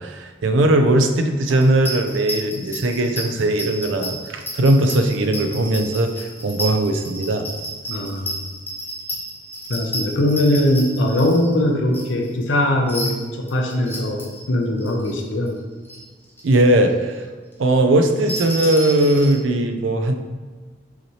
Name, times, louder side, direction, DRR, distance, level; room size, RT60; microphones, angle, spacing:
voice 1, 0.0-7.5 16.4-17.2 17.6-20.1, right 1 dB, 85° right, 6 dB, 0.4 m, -19 dB
sound 1, 1.5-12.5 12.9-14.4 14.8-15.6 15.8-16.0 16.3-16.6 16.9-17.0 18.0-19.3, equal, 10° left, 0.6 m, -31 dB
voice 2, 7.9-8.4 9.7-15.5, left 1 dB, 85° left, 2 dB, 0.6 m, -20 dB
5.7 x 2.8 x 3.1 m, 1.4 s
head